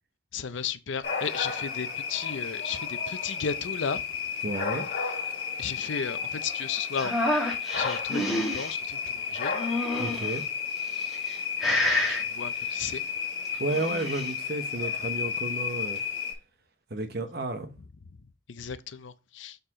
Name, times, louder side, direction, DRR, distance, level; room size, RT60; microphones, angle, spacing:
voice 1, 0.3-4.0 5.6-7.2 7.7-9.5 12.1-13.0 18.5-19.6, left 6 dB, 75° left, 0.6 m, -34 dB
sound 1, 1.0-16.3, left 6 dB, 55° left, 2.3 m, -32 dB
voice 2, 4.4-4.8 10.0-10.4 13.6-16.0 16.9-17.8, right 2 dB, 50° right, 0.9 m, -32 dB
sound 2, 7.0-8.7 9.5-10.4 11.0-11.3 11.6-12.2 13.5-14.3, left 1 dB, ahead, 1.9 m, -28 dB
6.6 x 4.7 x 3.6 m
head